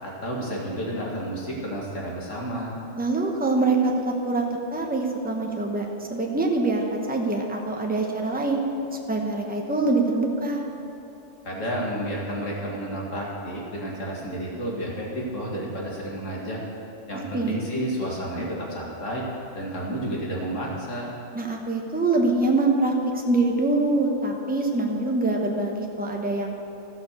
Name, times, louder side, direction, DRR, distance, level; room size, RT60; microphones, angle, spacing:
voice 1, 0.0-2.8 11.4-16.6 17.1-19.2 19.5-21.1, right 1 dB, 90° left, -4 dB, 2.4 m, -31 dB
voice 2, 3.0-8.6 9.1-10.6 17.3-17.6 21.3-22.9 23.3-26.5, right 2 dB, 10° right, 1 dB, 1.0 m, -24 dB
13.5 x 6.3 x 6.7 m, 2.7 s
omnidirectional pair, 1.3 m